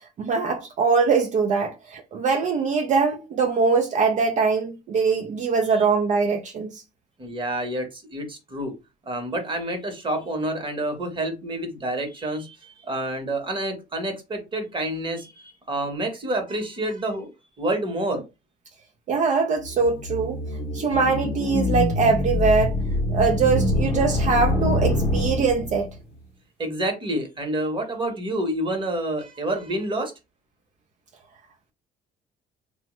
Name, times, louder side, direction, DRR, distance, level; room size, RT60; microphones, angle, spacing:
voice 1, 0.2-6.8 19.1-20.4 20.7-22.8 23.1-25.9, right 5 dB, 45° right, 0.4 m, -22 dB
voice 2, 7.2-8.7 9.0-17.3 17.6-18.2 26.6-30.1, right 1 dB, 30° right, 0.9 m, -28 dB
sound 1, 19.6-26.0, left 2 dB, 35° left, 0.7 m, -25 dB
3.0 x 2.1 x 3.0 m
cardioid pair, 110°, 17 cm